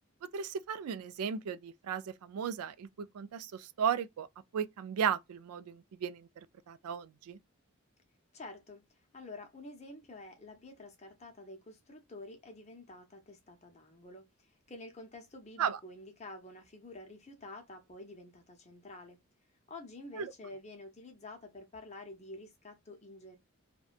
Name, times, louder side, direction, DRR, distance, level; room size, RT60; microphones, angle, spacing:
voice 1, 0.3-4.3 4.5-6.3 6.7-7.4 15.6-15.8 20.2-20.3, right 7 dB, 90° right, 0.3 m, -35 dB
voice 2, 8.3-19.2 19.7-23.4, left 2 dB, 30° left, 0.6 m, -49 dB
2.7 x 2.2 x 2.4 m
head